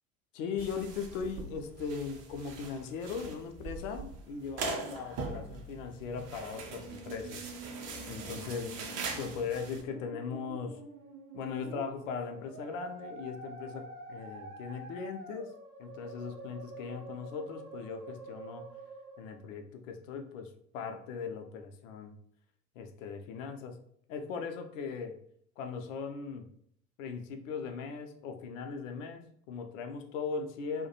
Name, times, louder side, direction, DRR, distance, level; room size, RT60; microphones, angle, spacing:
voice 1, 0.3-7.5 8.1-8.8 9.1-10.8 11.3-15.5 15.8-18.7 19.2-22.2 22.8-23.8 24.1-25.2 25.6-26.5 27.0-30.9, left 5 dB, 60° left, 6 dB, 0.5 m, -39 dB
sound 1, 0.6-9.8, right 3 dB, 35° right, 0.5 m, -42 dB
Musical instrument, 6.5-19.5, right 2 dB, 90° right, 0.6 m, -48 dB
2.2 x 2.1 x 2.7 m, 0.67 s
figure-of-eight pair, 70°, 44 cm